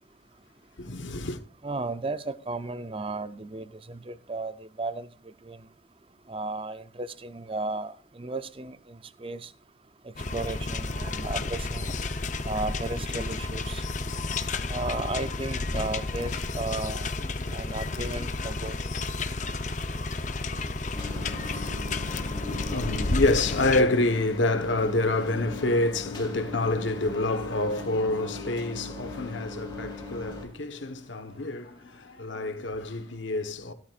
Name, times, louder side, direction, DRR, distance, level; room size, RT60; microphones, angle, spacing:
voice 1, 0.8-1.4 21.9-33.7, left 2 dB, 90° left, 1.3 m, -28 dB
voice 2, 1.6-5.7 6.3-9.5 10.0-12.0 12.4-13.9 14.7-17.1 17.5-18.8, right 2 dB, 30° right, 0.6 m, -34 dB
sound 1, 10.2-23.8, left 3 dB, 40° left, 0.8 m, -31 dB
sound 2, 20.9-30.5, left 3 dB, 25° left, 2.7 m, -39 dB
16.5 x 13.0 x 2.5 m
head